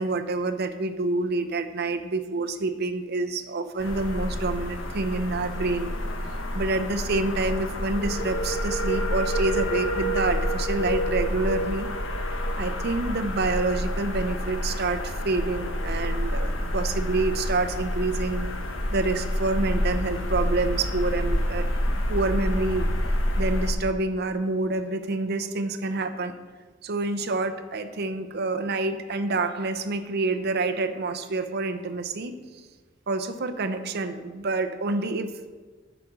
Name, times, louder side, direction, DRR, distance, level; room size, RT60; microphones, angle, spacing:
voice 1, 0.0-5.9 6.5-11.9 12.6-18.5 18.9-22.9 23.4-26.3 26.8-32.3 33.1-35.5, right 3 dB, 55° right, 8 dB, 0.7 m, -27 dB
sound 1, 3.8-23.7, equal, 85° left, 1.2 m, -28 dB
10.5 x 5.1 x 6.2 m, 1.4 s
head